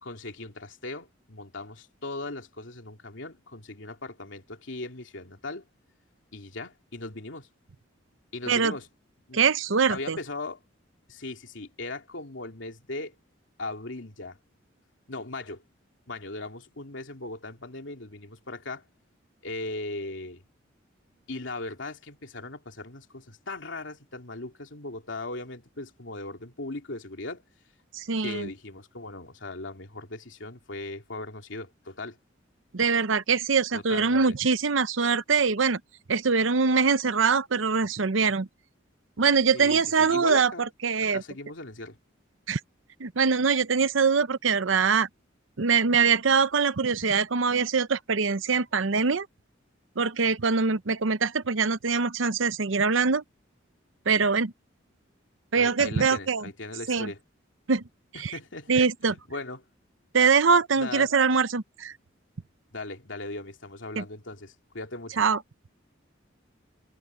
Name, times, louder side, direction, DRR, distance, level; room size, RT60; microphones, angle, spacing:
voice 1, 0.0-5.6 6.3-7.5 8.3-8.9 9.3-9.4 9.9-10.6 11.1-13.1 13.6-14.4 15.1-15.6 16.1-18.8 19.4-20.4 21.3-27.4 28.2-32.2 33.7-34.4 39.5-40.6 41.1-42.0 55.6-57.2 58.1-59.6 60.8-61.1 62.7-65.2, left 2 dB, 75° left, 2.7 m, -38 dB
voice 2, 9.3-10.2 27.9-28.5 32.7-35.8 36.1-38.5 39.2-41.2 42.5-42.6 43.0-45.1 45.6-49.3 50.0-53.2 54.1-54.5 55.5-56.4 56.9-57.1 57.7-57.8 58.2-58.3 58.7-59.1 60.1-61.9 64.0-64.1 65.2-65.4, right 5 dB, 85° right, 0.8 m, -23 dB
head